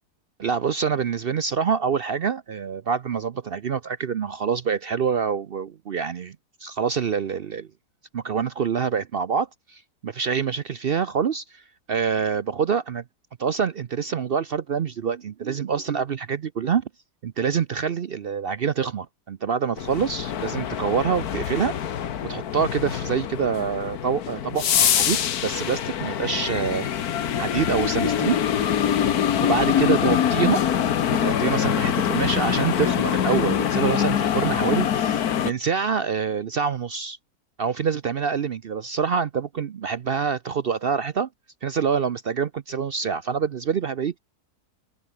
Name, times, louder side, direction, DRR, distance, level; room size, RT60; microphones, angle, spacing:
voice 1, 0.4-7.7 8.1-11.6 11.9-13.0 13.4-16.8 17.2-21.7 22.2-26.9 27.4-28.4 29.4-30.6 31.1-37.2 37.6-41.3 41.6-44.2, right 6 dB, 60° right, 0.6 m, -26 dB
sound 1, 19.8-35.5, left 9 dB, 70° left, 1.6 m, -24 dB
omnidirectional pair, 1.7 m